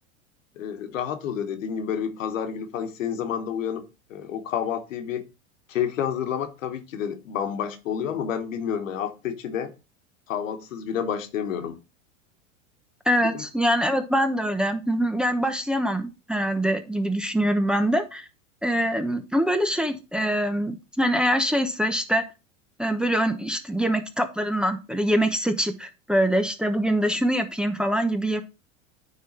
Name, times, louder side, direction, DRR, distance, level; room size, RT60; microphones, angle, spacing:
voice 1, 0.6-3.8 4.1-5.2 5.7-9.7 10.3-11.8 13.2-13.5, left 8 dB, 80° left, 1.3 m, -29 dB
voice 2, 13.1-18.3 18.6-22.3 22.8-28.4, equal, ahead, 0.9 m, -24 dB
9.3 x 4.0 x 4.2 m
hypercardioid pair, 100°, 38 cm